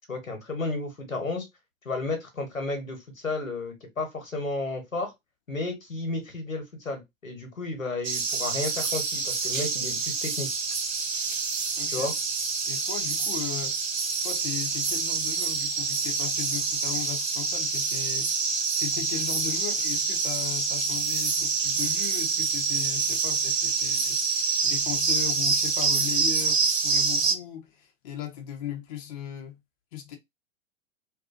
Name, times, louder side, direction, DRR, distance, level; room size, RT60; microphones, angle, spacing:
voice 1, 0.1-1.5 1.8-5.1 5.5-10.5 11.9-12.1, left 2 dB, 85° left, 1.1 m, -32 dB
sound 1, 8.0-27.3, right 4 dB, 85° right, 0.6 m, -27 dB
voice 2, 11.8-12.1 12.7-13.8 14.2-18.3 18.8-29.6 29.9-30.2, left 10 dB, 30° left, 0.4 m, -37 dB
2.5 x 2.3 x 2.5 m
figure-of-eight pair, 100°, 39 cm